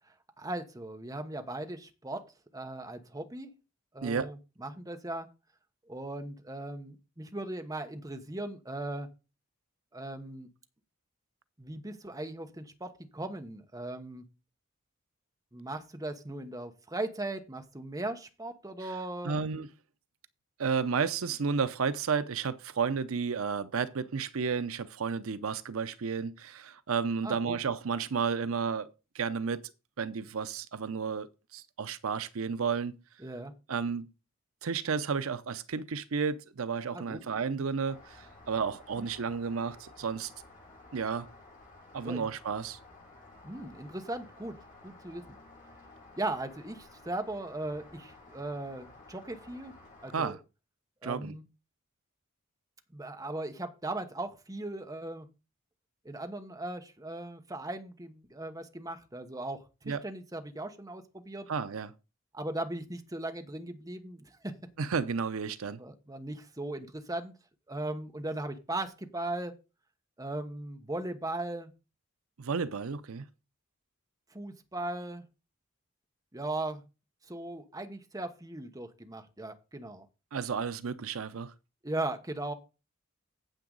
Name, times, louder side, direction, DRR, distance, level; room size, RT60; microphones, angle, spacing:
voice 1, 0.4-3.5 3.9-5.3 5.9-9.1 9.9-10.5 11.6-14.2 15.5-19.4 27.2-27.6 33.2-33.5 36.9-37.2 39.0-39.1 42.0-42.3 43.4-45.2 46.1-49.7 50.0-50.4 51.0-51.4 52.9-55.3 56.0-61.5 62.3-64.6 65.8-67.3 67.7-69.5 70.2-71.7 74.3-75.2 76.3-76.8 77.3-80.1 81.8-82.5, right 2 dB, 15° right, 1.1 m, -38 dB
voice 2, 19.2-19.7 20.6-28.9 29.1-29.6 30.0-33.0 33.7-34.1 34.6-40.3 40.9-41.3 41.9-42.8 50.1-50.4 51.0-51.3 59.9-60.0 61.5-61.9 64.8-65.8 72.4-73.2 80.3-81.5, right 5 dB, 85° right, 0.6 m, -32 dB
Rain, 37.8-50.2, left 2 dB, 40° left, 6.3 m, -54 dB
9.0 x 7.8 x 3.9 m
head